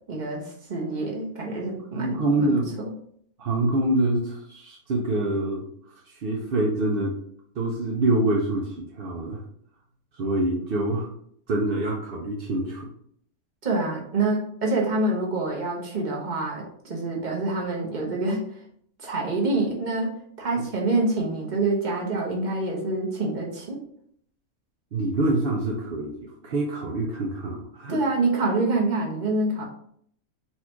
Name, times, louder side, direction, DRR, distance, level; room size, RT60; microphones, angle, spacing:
voice 1, 0.1-2.5 13.6-18.4 19.0-20.1 20.4-23.8 27.9-29.7, right 2 dB, 35° right, -2 dB, 1.0 m, -26 dB
voice 2, 1.9-2.7 3.4-7.2 7.6-9.4 10.1-11.1 11.5-12.9 24.9-28.0, right 2 dB, 55° right, -1 dB, 0.6 m, -26 dB
4.3 x 2.4 x 4.4 m, 0.66 s
omnidirectional pair, 1.5 m